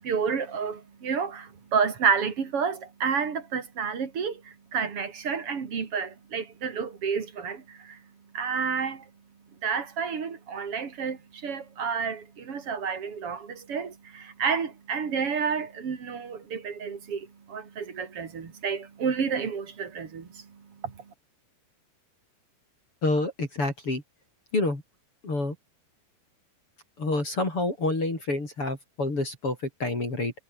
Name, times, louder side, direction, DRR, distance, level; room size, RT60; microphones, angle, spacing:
voice 1, 0.0-8.0 8.3-9.0 9.6-21.0, right 6 dB, 40° right, 3.0 m, -30 dB
voice 2, 23.0-24.0 24.5-24.8 25.2-25.5 27.0-30.3, left 2 dB, 30° left, 6.4 m, -28 dB
omnidirectional pair, 5.1 m